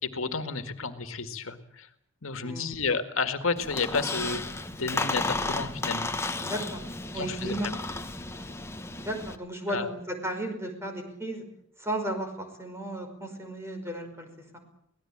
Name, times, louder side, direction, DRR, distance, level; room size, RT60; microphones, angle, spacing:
voice 1, 0.0-1.9 2.2-6.1 7.1-7.7 9.7-9.9, left 4 dB, 75° left, 9 dB, 1.9 m, -31 dB
Squeak, 3.6-9.4, left 2 dB, 15° left, 1.3 m, -33 dB
voice 2, 6.4-6.8 7.1-7.7 9.0-11.4 11.8-12.3 12.6-14.3 14.5-14.6, right 1 dB, 15° right, 4 dB, 5.2 m, -34 dB
24.5 x 18.5 x 8.8 m, 0.70 s
head